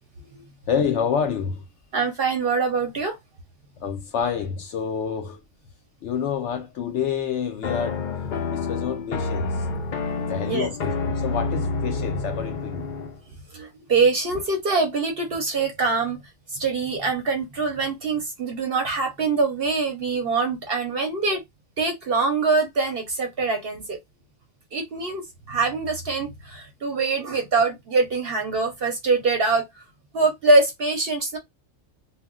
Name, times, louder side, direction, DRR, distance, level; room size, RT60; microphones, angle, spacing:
voice 1, 0.7-1.6 3.8-5.4 6.0-8.1 8.5-9.6 10.3-12.9, left 7 dB, 65° left, 0.8 m, -28 dB
voice 2, 1.9-3.2 10.5-10.7 13.5-16.2 16.5-21.4 21.8-24.0 24.7-29.8 30.1-31.4, right 3 dB, 55° right, 0.7 m, -24 dB
sound 1, 7.6-13.2, left 4 dB, 85° left, 0.4 m, -28 dB
2.2 x 2.1 x 3.5 m
omnidirectional pair, 1.4 m